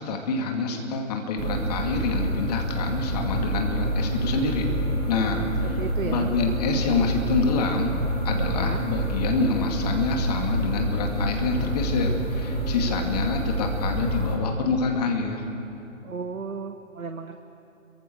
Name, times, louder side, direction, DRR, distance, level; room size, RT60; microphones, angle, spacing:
voice 1, 0.0-4.7 5.1-5.8 6.0-7.9 8.2-15.4, left 4 dB, 30° left, 2 dB, 2.4 m, -27 dB
sound 1, 1.4-14.3, right 1 dB, 20° right, 2.7 m, -27 dB
voice 2, 5.8-6.3 8.5-8.8 16.0-17.4, right 5 dB, 80° right, 6 dB, 1.2 m, -34 dB
29.0 x 23.5 x 4.8 m, 2.9 s
figure-of-eight pair, 140°, 41 cm